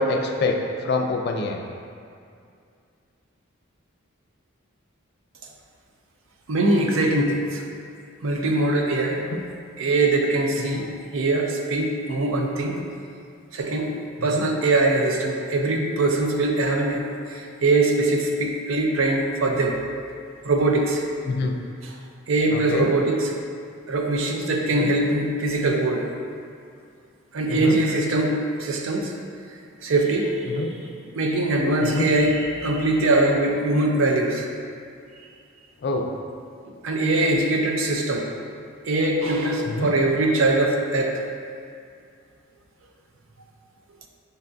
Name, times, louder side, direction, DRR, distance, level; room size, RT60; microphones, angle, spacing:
voice 1, 0.0-1.6 9.3-9.4 10.7-10.8 14.3-14.4 21.2-21.5 22.5-22.9 24.7-24.9 27.5-27.8 30.5-30.7 31.8-32.1 35.8-36.1 39.7-39.9, left 3 dB, 50° left, 3 dB, 0.3 m, -25 dB
voice 2, 6.5-7.6 8.2-9.3 9.8-12.8 13.5-13.9 14.2-19.8 20.4-21.0 21.8-22.0 22.3-23.3 23.9-26.1 27.3-29.1 29.8-30.8 31.1-34.5 36.8-38.3 38.8-41.2, right 2 dB, 70° right, 1 dB, 0.5 m, -22 dB
6.5 x 2.2 x 2.5 m, 2.3 s
head